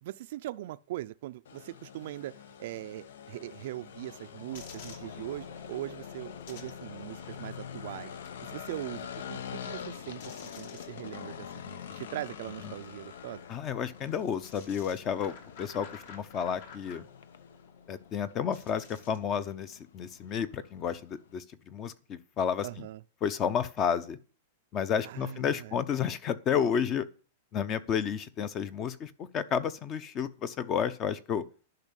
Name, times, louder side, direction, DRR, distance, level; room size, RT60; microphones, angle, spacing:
voice 1, 0.0-8.2 8.4-13.4 22.6-23.0 25.0-25.8, right 15 dB, 60° right, 0.4 m, -41 dB
sound 1, 1.5-21.3, left 8 dB, 80° left, 0.8 m, -46 dB
sound 2, 4.5-19.3, left 6 dB, 60° left, 2.7 m, -50 dB
voice 2, 13.5-17.1 17.9-22.7 23.2-24.2 24.7-27.1 27.5-31.4, left 7 dB, 25° left, 0.7 m, -31 dB
10.5 x 5.6 x 8.2 m
supercardioid pair, 160°, 0 cm